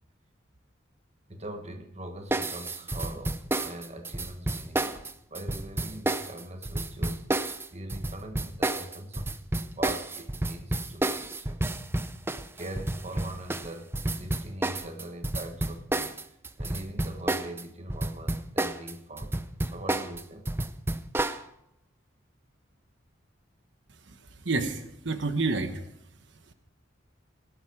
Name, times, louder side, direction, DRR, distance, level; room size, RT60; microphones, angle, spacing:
voice 1, 1.3-9.3 9.7-11.7 12.5-20.6, right 1 dB, 35° right, 6 dB, 1.4 m, -42 dB
sound 1, 2.3-17.6 17.9-21.4, right 2 dB, 10° right, 0.6 m, -30 dB
voice 2, 24.0-25.8 26.5-26.6, right 3 dB, 70° right, 8 dB, 1.2 m, -30 dB
18.0 x 12.0 x 4.8 m, 0.76 s
head